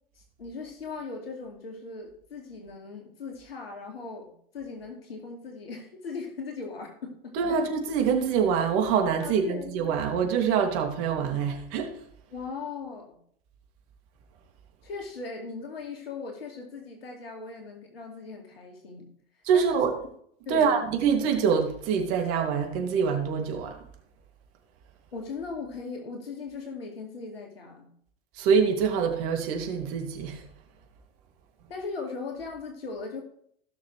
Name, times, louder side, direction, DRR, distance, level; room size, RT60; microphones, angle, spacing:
voice 1, 0.2-7.6 9.2-9.8 12.3-13.2 14.8-19.1 19.5-19.8 20.5-20.8 25.1-27.9 31.7-33.2, left 4 dB, 80° left, 2 dB, 2.4 m, -38 dB
voice 2, 7.3-12.0 19.4-19.9 20.5-23.8 28.4-30.4, right 6 dB, 50° right, 4 dB, 2.6 m, -25 dB
16.5 x 6.6 x 3.3 m, 0.65 s
hypercardioid pair, 95°, 29 cm